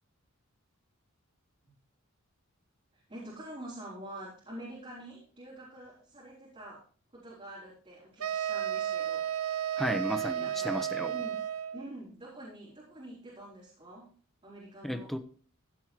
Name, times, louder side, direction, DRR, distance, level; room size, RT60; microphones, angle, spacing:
voice 1, 2.9-6.9 7.1-9.3 10.4-10.8 11.1-11.4 11.7-14.1 14.4-15.1, right 1 dB, 30° right, 4.5 m, -46 dB
sound 1, 8.2-11.9, right 10 dB, 80° right, 0.6 m, -33 dB
voice 2, 9.8-11.1 14.8-15.2, equal, ahead, 1.0 m, -33 dB
15.5 x 5.7 x 4.6 m
head